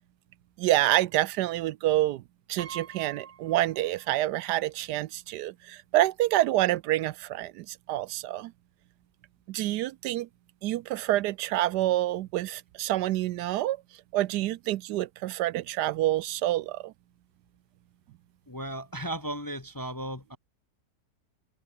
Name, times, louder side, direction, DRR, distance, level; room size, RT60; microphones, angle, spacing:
voice 1, 0.6-2.2 2.5-8.5 9.5-10.3 10.6-13.8 14.1-16.9, right 15 dB, 80° right, 1.1 m, -27 dB
Piano, 2.6-4.4 4.7-4.8 6.0-6.1 6.4-6.6, right 7 dB, 45° right, 0.8 m, -46 dB
voice 2, 18.5-20.4, right 1 dB, 15° left, 0.7 m, -35 dB
open air
omnidirectional pair, 1.8 m